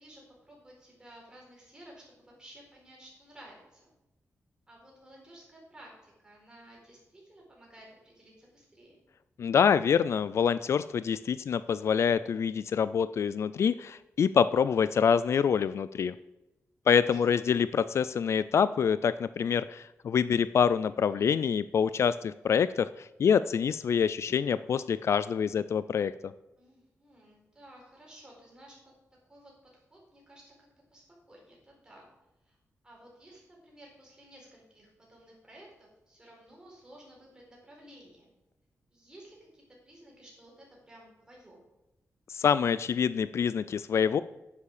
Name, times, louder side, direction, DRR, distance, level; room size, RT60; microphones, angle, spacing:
voice 1, 0.0-3.9 4.7-9.0 17.0-17.4 26.6-28.8 29.3-29.5 29.9-32.1 32.4-32.6 32.8-38.3 38.9-41.6, right 1 dB, 15° right, -3 dB, 4.5 m, -54 dB
voice 2, 9.4-16.1 16.9-26.3 42.3-44.2, left 7 dB, 60° left, 15 dB, 0.3 m, -26 dB
9.8 x 8.4 x 6.6 m, 0.96 s
wide cardioid pair, 160°, 5 cm